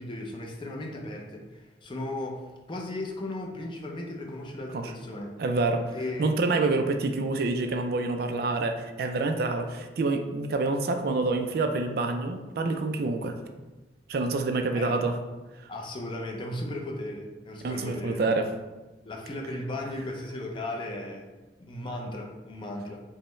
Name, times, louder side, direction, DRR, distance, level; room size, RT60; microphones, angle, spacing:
voice 1, 0.0-5.3 5.9-6.3 14.8-15.0 15.7-18.2 19.0-21.3 21.7-23.0, left 1 dB, 25° left, 0 dB, 0.5 m, -36 dB
voice 2, 5.4-13.4 14.1-15.2 17.6-18.5, right 3 dB, 55° right, 6 dB, 0.3 m, -27 dB
5.3 x 2.1 x 3.1 m, 1.1 s
head